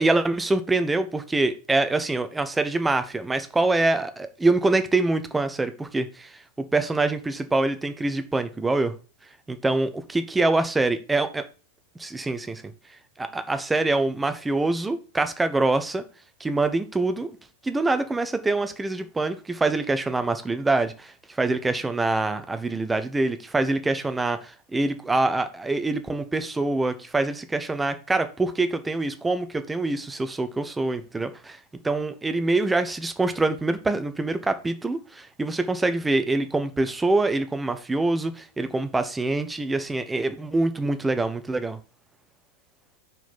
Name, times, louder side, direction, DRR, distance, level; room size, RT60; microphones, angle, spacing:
voice 1, 0.0-6.4 6.7-8.9 9.5-11.4 12.0-12.6 13.2-16.0 16.4-17.4 17.6-31.6 31.8-41.8, right 2 dB, 10° right, 0.8 m, -25 dB
5.3 x 5.1 x 5.8 m
figure-of-eight pair, 90°, 0 cm